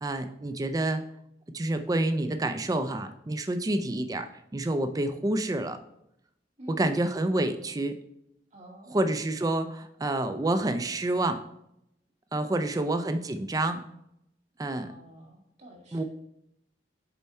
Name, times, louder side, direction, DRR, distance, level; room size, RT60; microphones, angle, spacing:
voice 1, 0.0-1.0 1.5-5.8 6.7-8.0 8.9-11.4 12.3-13.8 14.6-14.9 15.9-16.0, right 2 dB, 20° right, 9 dB, 0.4 m, -28 dB
voice 2, 6.6-7.2 8.5-9.1 14.7-16.0, equal, 40° right, 1 dB, 1.8 m, -49 dB
7.0 x 4.3 x 4.3 m, 0.78 s
head